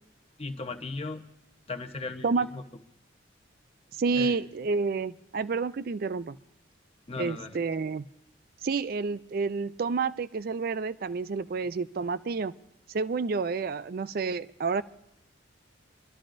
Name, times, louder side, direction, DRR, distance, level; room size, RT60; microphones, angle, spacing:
voice 1, 0.4-1.2 1.7-2.6 4.1-4.4 7.1-7.6, left 3 dB, 30° left, 6 dB, 0.9 m, -37 dB
voice 2, 4.0-6.4 7.2-8.1 8.6-12.5 12.9-14.8, right 4 dB, 50° right, 15 dB, 0.4 m, -29 dB
25.0 x 12.5 x 2.5 m, 0.83 s
head